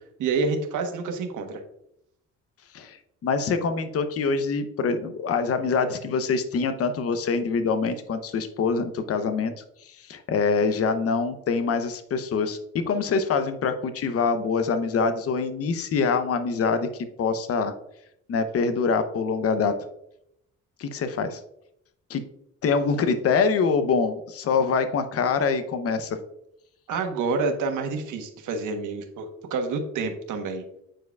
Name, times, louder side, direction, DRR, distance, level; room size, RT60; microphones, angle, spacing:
voice 1, 0.2-1.6 26.9-30.6, right 4 dB, 85° right, 4 dB, 1.2 m, -28 dB
voice 2, 3.2-9.5 9.8-12.6 12.9-16.9 17.2-17.7 18.3-19.7 20.8-21.4 22.1-22.2 22.6-26.2, left 5 dB, 50° left, 9 dB, 0.7 m, -25 dB
8.7 x 4.7 x 2.3 m, 0.77 s
cardioid pair, 90°, 30 cm